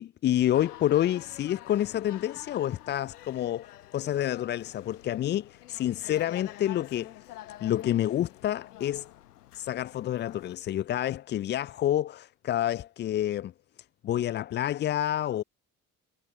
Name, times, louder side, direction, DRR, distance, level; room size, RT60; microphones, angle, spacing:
voice 1, 0.0-7.1 7.6-9.1 9.5-13.5 14.0-15.4, left 12 dB, 25° left, 0.3 m, -28 dB
sound 1, 0.5-10.6, left 14 dB, 80° left, 1.1 m, -48 dB
figure-of-eight pair, 50°, 45 cm